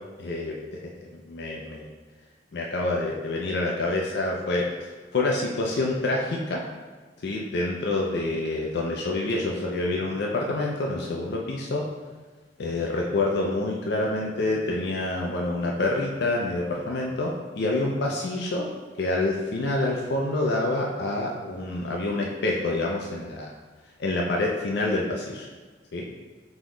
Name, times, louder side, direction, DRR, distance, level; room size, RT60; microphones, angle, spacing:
voice 1, 0.2-0.8 1.1-1.9 2.5-4.7 5.1-6.6 7.2-11.9 12.6-18.7 19.0-23.5 24.0-25.5 25.9-26.0, left 2 dB, 65° left, -1 dB, 0.5 m, -27 dB
3.9 x 3.0 x 3.7 m, 1.3 s
head